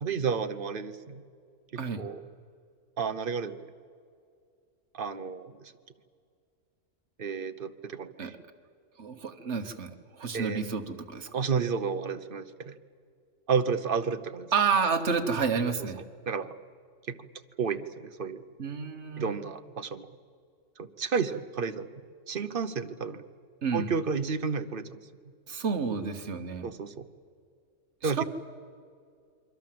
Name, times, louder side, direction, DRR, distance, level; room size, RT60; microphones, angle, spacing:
voice 1, 0.0-1.2 2.0-2.2 3.0-3.6 4.9-5.7 7.2-8.3 10.3-10.6 11.3-12.7 13.5-14.5 16.3-16.5 17.1-17.2 17.6-18.4 19.2-20.1 20.8-21.9 22.3-23.2 23.7-25.0 26.6-27.1 28.0-28.2, right 5 dB, 45° right, 10 dB, 1.1 m, -31 dB
voice 2, 9.0-11.3 14.5-16.0 18.6-19.4 23.6-23.9 25.5-26.7 28.0-28.2, right 5 dB, 65° right, 6 dB, 1.7 m, -30 dB
28.0 x 23.0 x 7.7 m, 2.2 s
omnidirectional pair, 1.3 m